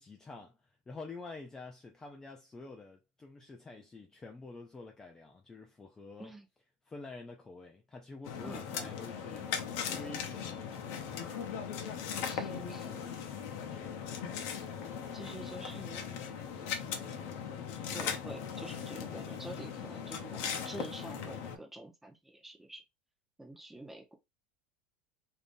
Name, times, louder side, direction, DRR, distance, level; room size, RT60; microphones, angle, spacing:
voice 1, 0.0-6.3 6.9-9.5 9.9-10.9, left 3 dB, 15° left, 0.4 m, -48 dB
sound 1, 8.2-21.6, left 7 dB, 60° left, 0.7 m, -39 dB
voice 2, 8.4-9.0 12.2-13.0 15.1-16.1 17.9-22.8 23.4-24.2, right 1 dB, 5° right, 0.8 m, -47 dB
3.4 x 2.7 x 2.6 m
supercardioid pair, 145°, 4 cm